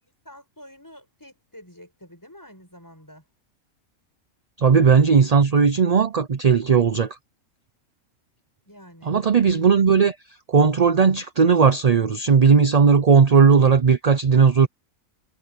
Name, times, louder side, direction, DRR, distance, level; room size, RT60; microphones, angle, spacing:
voice 1, 0.0-3.2 8.7-9.2, equal, 15° left, 7.8 m, -47 dB
voice 2, 4.6-7.2 9.1-10.2 10.5-14.7, right 5 dB, 40° right, 0.6 m, -17 dB
omnidirectional pair, 1.5 m